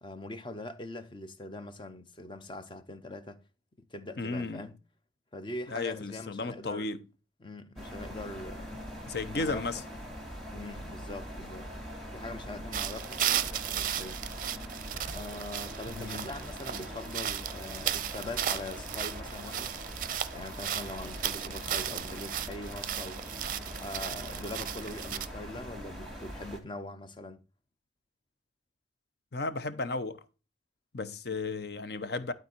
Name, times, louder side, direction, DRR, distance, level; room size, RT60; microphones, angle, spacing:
voice 1, 0.0-3.4 3.8-4.8 5.3-6.9 7.4-8.8 9.3-9.7 10.5-11.7 12.1-14.2 15.1-19.8 20.3-23.2 23.8-27.4 31.3-31.4, left 2 dB, 25° left, 0.7 m, -42 dB
voice 2, 4.2-4.7 5.7-7.1 9.1-9.8 15.9-16.3 29.3-30.2 30.9-32.3, left 3 dB, 60° left, 0.8 m, -34 dB
sound 1, 7.7-26.6, equal, 5° left, 2.4 m, -42 dB
sound 2, 12.7-25.3, right 10 dB, 45° right, 0.5 m, -35 dB
12.0 x 4.0 x 4.4 m
head